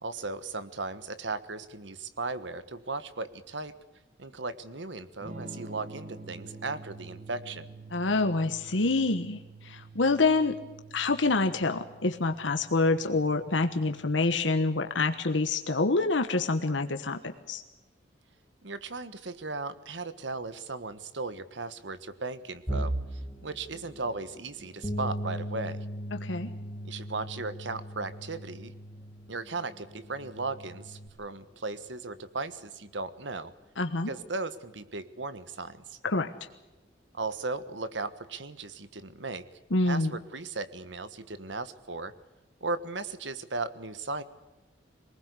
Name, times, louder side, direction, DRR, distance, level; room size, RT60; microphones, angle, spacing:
voice 1, 0.0-3.7 4.2-7.6 18.6-25.8 26.8-28.7 29.3-33.5 34.1-36.0 37.1-39.4 39.8-42.1 42.6-44.2, right 3 dB, 80° right, 13 dB, 1.4 m, -36 dB
Electric guitar / Strum, 5.2-15.0, right 3 dB, 45° right, 2.1 m, -48 dB
voice 2, 7.9-10.6 10.9-17.2 17.5-17.6 26.2-26.5 33.8-34.1 36.0-36.3 39.7-40.1, left 3 dB, 90° left, 6 dB, 1.3 m, -26 dB
sound 1, 22.7-34.5 34.9-35.2 35.6-35.7 36.6-37.1, right 1 dB, 10° left, 2.4 m, -42 dB
Bass guitar, 24.8-31.1, equal, 25° left, 3.0 m, -39 dB
23.0 x 20.0 x 8.3 m, 1.1 s
head